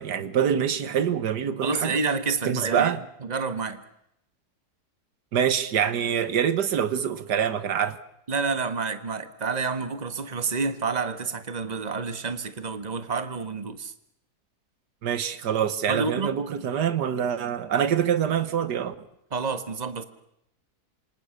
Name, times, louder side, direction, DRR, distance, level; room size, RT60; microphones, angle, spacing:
voice 1, 0.0-1.9 2.4-3.0 5.3-8.0 15.0-18.9, right 8 dB, 85° right, 1.8 m, -25 dB
voice 2, 1.6-3.8 8.3-13.9 15.9-16.4 19.3-20.0, right 4 dB, 25° right, 1.5 m, -29 dB
27.5 x 25.5 x 6.6 m
omnidirectional pair, 1.7 m